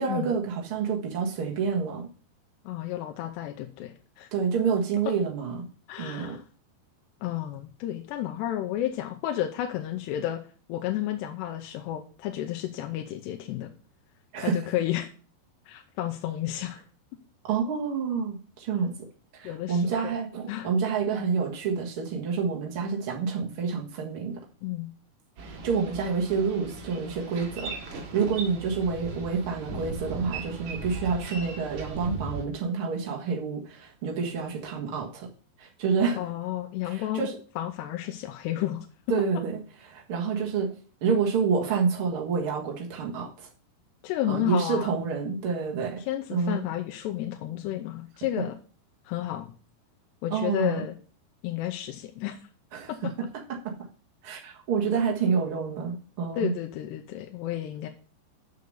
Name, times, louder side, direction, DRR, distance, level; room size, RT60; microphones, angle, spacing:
voice 1, 0.0-2.1 4.3-5.6 6.0-6.4 14.3-14.6 17.4-18.9 19.3-24.4 25.4-35.3 35.6-36.2 36.8-37.4 39.1-40.7 41.0-43.5 44.3-46.0 46.3-46.6 50.3-50.8 52.7-52.9 53.5-53.7 54.2-56.5, right 5 dB, 85° right, -1 dB, 1.1 m, -28 dB
voice 2, 2.7-4.3 5.9-6.4 7.2-10.4 10.7-13.7 14.4-15.1 15.7-16.8 19.4-20.2 20.5-20.7 24.6-24.9 36.2-37.3 37.6-38.9 44.0-44.9 46.1-48.6 49.1-49.5 50.2-51.0 51.4-52.4 56.4-57.9, left 12 dB, 80° left, 4 dB, 2.7 m, -32 dB
Boat Water vehicle, 25.4-32.4, right 3 dB, 60° right, 3.5 m, -38 dB
6.9 x 6.7 x 6.5 m, 0.40 s
omnidirectional pair, 5.1 m